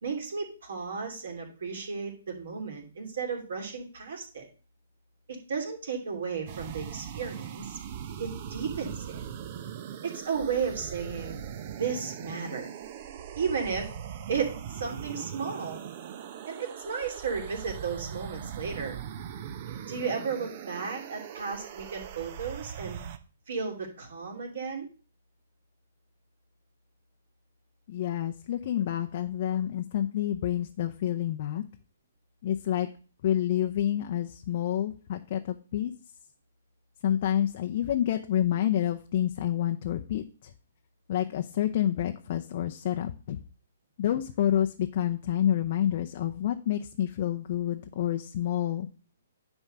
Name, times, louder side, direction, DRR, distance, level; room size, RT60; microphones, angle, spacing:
voice 1, 0.0-4.5 5.3-7.8 8.2-9.2 10.0-11.4 11.8-12.7 13.3-13.9 14.3-15.8 16.5-19.0 19.7-23.0 23.5-24.9, right 5 dB, 65° right, 1 dB, 3.0 m, -34 dB
sound 1, 6.5-23.2, right 9 dB, 45° right, 0.9 m, -40 dB
voice 2, 27.9-31.6 32.4-32.9 33.2-35.9 37.0-40.5 41.1-43.4 44.0-48.9, left 11 dB, 50° left, 5 dB, 0.7 m, -28 dB
10.0 x 3.6 x 6.7 m, 0.37 s
hypercardioid pair, 135°, 0 cm